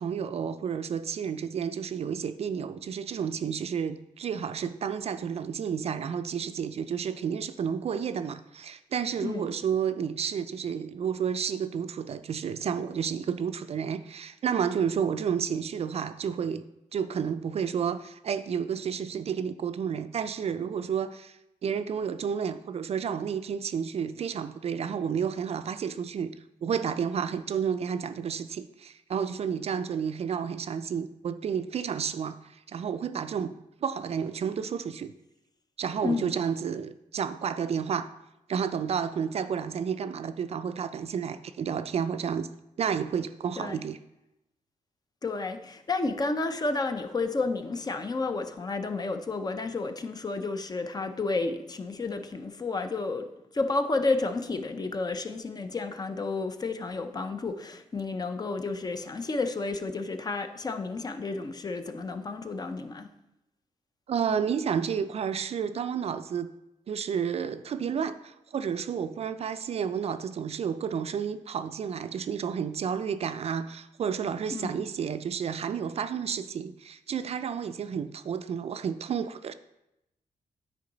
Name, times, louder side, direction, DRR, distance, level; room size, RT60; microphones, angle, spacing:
voice 1, 0.0-16.6 16.9-26.3 26.6-33.5 33.8-35.1 35.8-38.1 38.5-42.5 42.8-44.0 64.1-66.5 66.9-79.5, right 7 dB, 50° right, 0.4 m, -31 dB
voice 2, 36.0-36.3 43.6-43.8 45.2-53.3 53.5-63.1 74.5-74.8, left 3 dB, 30° left, 0.5 m, -31 dB
9.7 x 4.6 x 3.9 m
wide cardioid pair, 125°, 14 cm